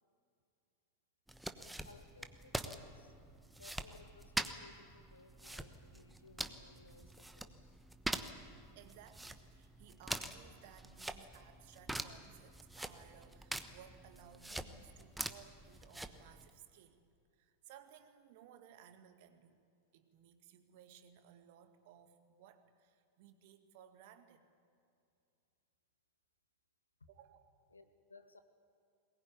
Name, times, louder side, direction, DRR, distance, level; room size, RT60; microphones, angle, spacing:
sound 1, 1.3-16.5, right 1 dB, 5° right, 1.1 m, -45 dB
voice 1, 1.8-3.1 3.6-7.6 27.0-27.1 27.7-28.4, left 3 dB, 75° left, 9 dB, 1.6 m, -60 dB
voice 2, 8.5-17.0 17.3-19.6 19.9-24.5 27.1-27.7, right 9 dB, 50° right, 8 dB, 1.9 m, -60 dB
22.0 x 19.5 x 9.4 m, 2.4 s
figure-of-eight pair, 90°, 0 cm